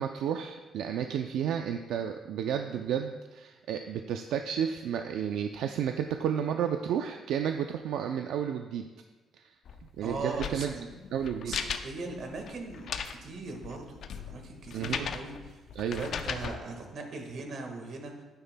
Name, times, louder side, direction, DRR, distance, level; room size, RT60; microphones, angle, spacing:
voice 1, 0.0-8.9 9.4-9.5 10.0-10.7 11.1-11.6 14.7-15.1 15.8-16.1, right 8 dB, 85° right, 6 dB, 0.4 m, -32 dB
sound 1, 9.6-16.6, left 7 dB, 60° left, 0.5 m, -38 dB
voice 2, 10.0-10.9 11.5-15.6 15.9-18.2, right 3 dB, 55° right, 3 dB, 1.5 m, -40 dB
11.0 x 9.6 x 2.2 m, 1.2 s
cardioid pair, 125°, 0 cm